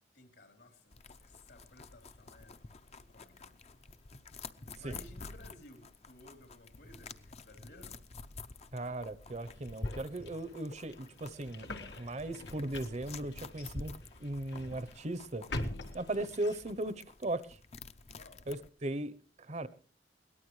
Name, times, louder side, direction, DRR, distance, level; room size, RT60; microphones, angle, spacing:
voice 1, 0.1-2.6 2.9-3.5 4.7-8.0 18.1-18.5, left 2 dB, 75° left, 6 dB, 3.5 m, -57 dB
sound 1, 0.9-18.7, left 3 dB, 40° left, 0.7 m, -49 dB
voice 2, 8.7-11.7 12.0-15.4 15.9-17.6 18.5-19.7, right 1 dB, 40° right, 16 dB, 0.8 m, -38 dB
sound 2, 9.4-16.9, left 1 dB, 90° left, 1.8 m, -45 dB
22.0 x 18.5 x 3.2 m, 0.39 s
head